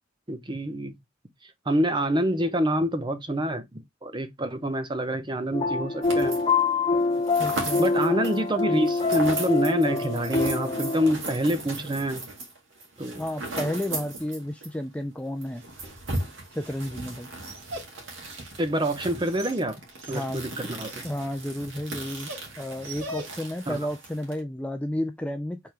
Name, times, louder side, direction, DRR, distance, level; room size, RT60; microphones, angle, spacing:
voice 1, 0.3-0.9 1.4-6.4 7.8-12.2 13.0-13.2 18.6-19.8 20.1-21.0 23.7-23.8, right 1 dB, 25° right, 0.7 m, -27 dB
sound 1, 5.5-11.1, left 4 dB, 25° left, 0.8 m, -25 dB
sound 2, 6.0-6.6 6.9-14.8 15.0-15.1 15.4-24.4, right 2 dB, 65° right, 1.9 m, -37 dB
voice 2, 7.4-7.8 13.2-15.6 16.5-17.3 20.1-20.5 21.0-22.3 22.6-25.6, left 1 dB, 5° left, 0.3 m, -32 dB
Dog, 15.4-23.7, right 1 dB, 85° right, 2.0 m, -44 dB
4.5 x 3.6 x 3.1 m
head